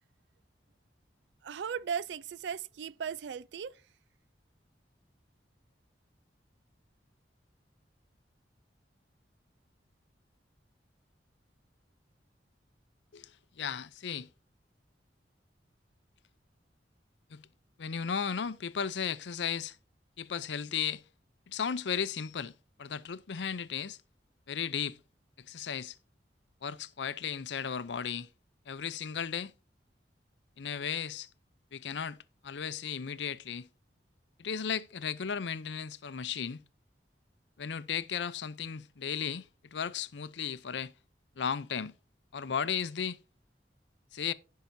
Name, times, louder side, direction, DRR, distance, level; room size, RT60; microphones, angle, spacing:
voice 1, 1.4-3.8, right 7 dB, 80° right, 0.4 m, -37 dB
voice 2, 13.6-14.3 17.3-17.4 17.8-19.8 20.2-21.0 21.5-22.5 22.8-24.0 24.5-25.0 25.4-26.0 26.6-28.3 28.7-29.5 30.6-31.3 31.7-32.2 32.4-33.7 34.4-36.6 37.6-40.9 41.4-41.9 42.3-43.2 44.1-44.3, left 7 dB, 85° left, 0.6 m, -35 dB
16.0 x 5.7 x 2.7 m
head